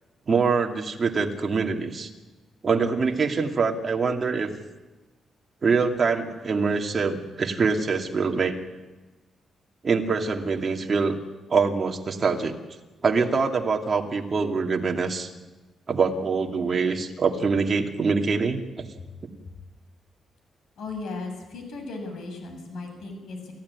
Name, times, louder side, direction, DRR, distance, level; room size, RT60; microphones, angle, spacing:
voice 1, 0.3-2.1 2.6-4.5 5.6-8.6 9.8-11.2 11.5-12.5 13.0-15.3 15.9-18.6, right 4 dB, 35° right, 3 dB, 2.6 m, -24 dB
voice 2, 20.8-23.5, left 3 dB, 75° left, 4 dB, 7.2 m, -36 dB
28.5 x 15.5 x 9.7 m, 1.2 s
cardioid pair, 135°, 0 cm